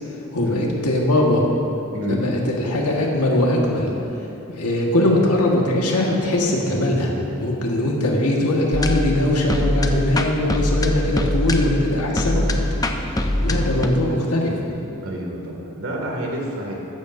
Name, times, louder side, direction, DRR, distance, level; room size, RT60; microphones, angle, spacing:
voice 1, 0.3-1.4 2.1-4.0 4.5-7.1 7.4-12.6 13.0-14.8, left 1 dB, 85° left, -1 dB, 1.6 m, -21 dB
voice 2, 1.9-2.3 13.4-13.6 15.0-16.7, equal, 65° right, -1 dB, 2.3 m, -29 dB
sound 1, 8.7-13.9, left 1 dB, 15° left, 0.6 m, -23 dB
15.0 x 13.5 x 2.7 m, 2.9 s
head